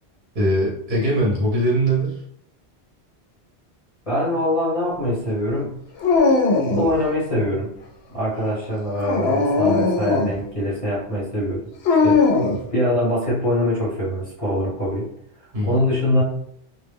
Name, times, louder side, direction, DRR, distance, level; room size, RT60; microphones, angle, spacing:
voice 1, 0.3-2.2 15.5-15.8, right 1 dB, 50° right, -4 dB, 0.8 m, -21 dB
voice 2, 4.1-5.7 6.7-7.7 8.1-11.6 12.0-12.2 12.7-15.1 15.4-16.2, left 1 dB, 35° left, -7 dB, 0.9 m, -23 dB
Dog, 6.0-7.0 8.9-10.4 11.9-12.6, left 3 dB, 75° left, 0.8 m, -19 dB
2.2 x 2.0 x 3.4 m, 0.67 s
omnidirectional pair, 1.1 m